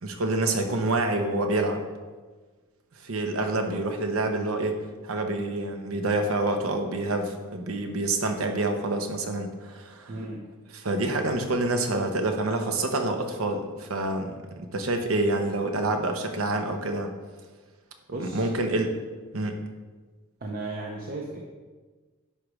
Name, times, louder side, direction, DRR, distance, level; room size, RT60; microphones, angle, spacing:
voice 1, 0.0-1.8 3.0-10.1 10.8-17.1 18.2-18.9 19.3-19.6, right 2 dB, 80° right, 5 dB, 0.9 m, -27 dB
voice 2, 10.1-10.5 18.1-18.5 20.4-21.4, right 2 dB, 45° right, -1 dB, 0.7 m, -35 dB
11.0 x 4.9 x 3.1 m, 1.3 s
head